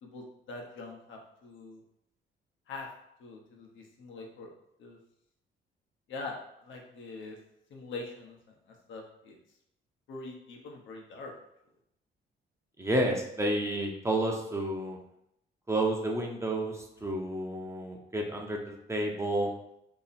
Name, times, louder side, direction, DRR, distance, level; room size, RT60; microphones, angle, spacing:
voice 1, 0.0-1.8 2.7-2.9 3.2-4.5 4.8-5.0 6.1-7.4 7.7-8.4 8.7-9.4 10.1-11.3, left 3 dB, 75° left, 1 dB, 0.9 m, -43 dB
voice 2, 12.8-15.0 15.7-19.5, right 1 dB, 15° right, 0 dB, 0.7 m, -30 dB
2.9 x 2.9 x 4.1 m, 0.78 s
cardioid pair, 90°, 20 cm